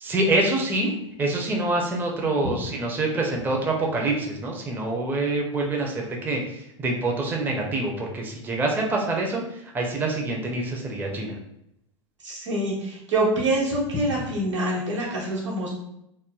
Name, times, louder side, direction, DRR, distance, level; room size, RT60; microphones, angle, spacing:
voice 1, 0.0-0.9 1.2-9.4 9.7-11.4, right 2 dB, 10° right, 0 dB, 0.4 m, -26 dB
voice 2, 12.2-15.7, right 1 dB, 80° right, -5 dB, 1.0 m, -25 dB
3.0 x 2.1 x 2.3 m, 0.79 s
figure-of-eight pair, 90°, 15 cm